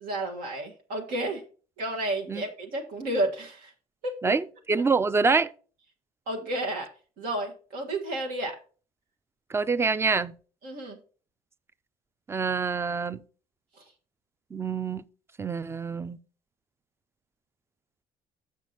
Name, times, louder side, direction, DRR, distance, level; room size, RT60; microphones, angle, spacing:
voice 1, 0.0-1.4 1.8-3.7 4.0-4.4 4.8-4.9 6.3-6.9 7.2-8.6 10.6-11.0, right 1 dB, 70° right, 1.6 m, -31 dB
voice 2, 4.2-5.5 9.5-10.3 12.3-13.2 14.5-15.0 15.4-16.2, right 4 dB, 15° right, 0.5 m, -26 dB
7.3 x 6.2 x 4.1 m
supercardioid pair, 90°, 14 cm